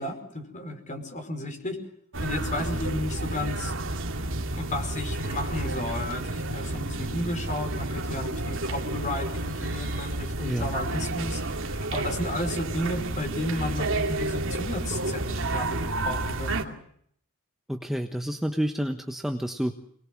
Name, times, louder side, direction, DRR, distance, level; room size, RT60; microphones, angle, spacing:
voice 1, 0.0-1.8 2.2-3.7 4.5-16.7, left 1 dB, 35° left, 6 dB, 5.3 m, -33 dB
sound 1, 2.1-16.6, right 2 dB, 65° right, 2.4 m, -30 dB
voice 2, 10.4-10.7 17.7-19.7, equal, ahead, 5 dB, 1.2 m, -29 dB
25.5 x 22.0 x 7.5 m, 0.66 s
head